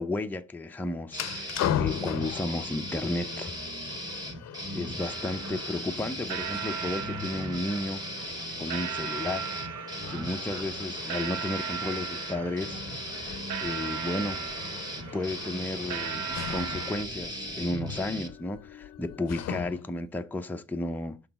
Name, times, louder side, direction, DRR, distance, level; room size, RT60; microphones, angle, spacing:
voice 1, 0.0-3.5 4.7-8.0 8.6-9.5 10.1-12.8 13.6-14.4 15.0-16.2 16.5-21.2, left 2 dB, 5° left, 0.6 m, -33 dB
sound 1, 1.1-20.0, left 10 dB, 60° left, 0.6 m, -39 dB
sound 2, 1.1-18.3, equal, 15° right, 1.6 m, -38 dB
sound 3, 5.0-17.0, right 8 dB, 65° right, 0.7 m, -38 dB
6.0 x 3.9 x 5.8 m
cardioid pair, 90°, 30 cm